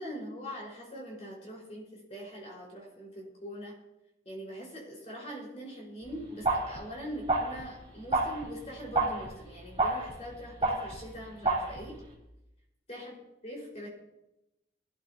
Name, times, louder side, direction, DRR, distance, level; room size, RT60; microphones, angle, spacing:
voice 1, 0.0-3.8 4.2-12.0 12.9-13.1 13.4-13.9, equal, 40° left, -3 dB, 5.1 m, -42 dB
sound 1, 6.0-12.1, right 2 dB, 30° right, 2.9 m, -31 dB
21.0 x 13.0 x 2.9 m, 0.92 s
head